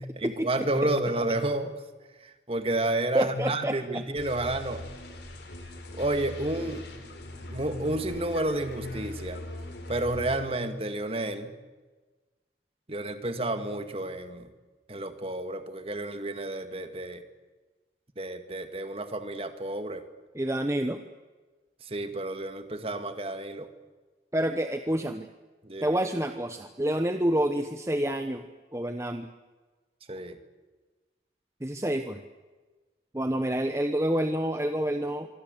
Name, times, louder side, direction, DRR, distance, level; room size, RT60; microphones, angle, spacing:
voice 1, 0.0-1.7 2.2-4.8 5.9-6.8 7.5-9.4 9.9-11.5 12.9-14.5 14.9-17.2 18.2-20.0 21.9-23.7 25.6-26.0 30.1-30.4, right 1 dB, 30° right, 8 dB, 2.0 m, -31 dB
voice 2, 3.1-4.0 20.3-21.0 24.3-25.3 25.8-28.4 28.7-29.3 31.6-32.2 33.1-35.3, right 1 dB, 15° right, 7 dB, 1.0 m, -28 dB
sound 1, 4.2-10.4, left 1 dB, 75° left, 4.2 m, -41 dB
25.5 x 24.5 x 8.0 m, 1.3 s
head